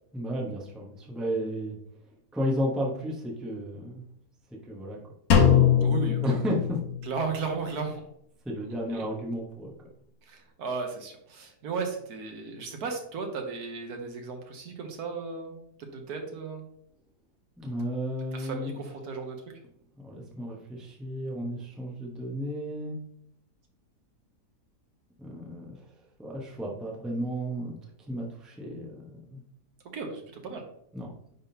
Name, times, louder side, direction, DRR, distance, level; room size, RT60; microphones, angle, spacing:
voice 1, 0.1-1.8 2.3-4.0 4.7-5.0 6.2-6.8 8.4-9.9 17.6-18.8 20.0-23.0 25.2-25.8 26.2-27.8 28.1-29.4 30.9-31.1, equal, ahead, -2 dB, 0.8 m, -33 dB
Drum, 5.3-7.2, left 8 dB, 65° left, 1.4 m, -22 dB
voice 2, 5.8-6.4 7.0-8.0 8.9-9.0 10.3-16.7 18.3-19.4 29.9-30.6, right 4 dB, 70° right, 3 dB, 1.5 m, -35 dB
9.4 x 3.7 x 2.8 m, 0.72 s
omnidirectional pair, 1.7 m